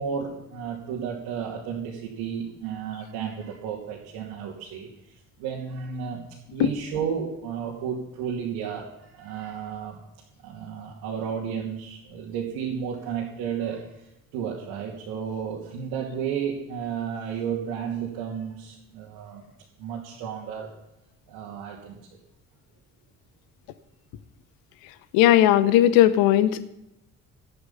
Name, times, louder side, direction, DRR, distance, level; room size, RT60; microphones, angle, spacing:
voice 1, 0.0-6.2 6.5-10.0 10.4-13.9 14.3-19.4 19.8-20.7 21.3-22.0, right 7 dB, 60° right, -3 dB, 2.5 m, -32 dB
voice 2, 25.1-26.6, left 12 dB, 60° left, 15 dB, 1.1 m, -17 dB
14.0 x 11.0 x 5.8 m, 0.86 s
figure-of-eight pair, 45°, 40 cm